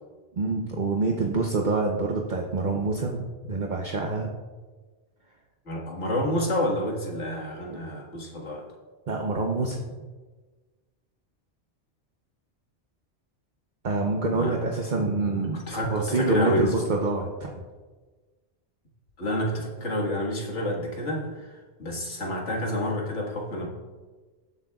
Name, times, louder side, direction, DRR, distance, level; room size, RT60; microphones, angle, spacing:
voice 1, 0.4-4.3 7.7-7.8 9.1-9.8 13.8-17.5, right 3 dB, 45° right, 0 dB, 0.9 m, -26 dB
voice 2, 5.7-8.7 14.4-14.6 15.5-16.7 19.2-23.7, left 1 dB, 80° left, -1 dB, 2.1 m, -29 dB
18.0 x 7.8 x 2.4 m, 1.3 s
omnidirectional pair, 1.2 m